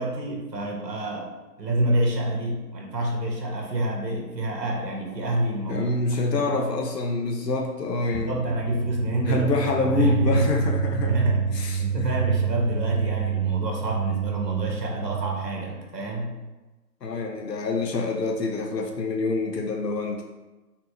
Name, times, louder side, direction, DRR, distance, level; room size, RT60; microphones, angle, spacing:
voice 1, 0.0-1.3 1.6-5.9 6.2-6.5 8.1-9.5 9.9-10.5 11.0-11.5 11.8-16.3, right 1 dB, 85° right, 0 dB, 1.3 m, -27 dB
voice 2, 5.7-8.4 9.2-11.1 11.5-12.3 17.0-20.2, left 3 dB, 85° left, 2 dB, 0.8 m, -26 dB
sound 1, 8.1-15.9, right 8 dB, 55° right, 0.5 m, -28 dB
4.2 x 3.6 x 2.9 m, 1.1 s
hypercardioid pair, 145°, 48 cm